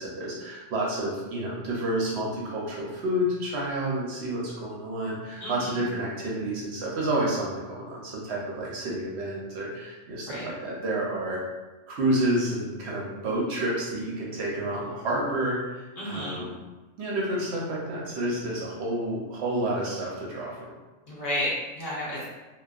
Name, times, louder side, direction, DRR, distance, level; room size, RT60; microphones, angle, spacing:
voice 1, 0.0-11.4 11.9-16.6 17.0-20.7, right 1 dB, 65° right, -4 dB, 0.8 m, -29 dB
voice 2, 5.4-5.9 10.3-10.5 16.0-16.4 21.1-22.2, left 1 dB, 50° left, -8 dB, 0.9 m, -32 dB
2.5 x 2.2 x 2.3 m, 1.2 s
omnidirectional pair, 1.3 m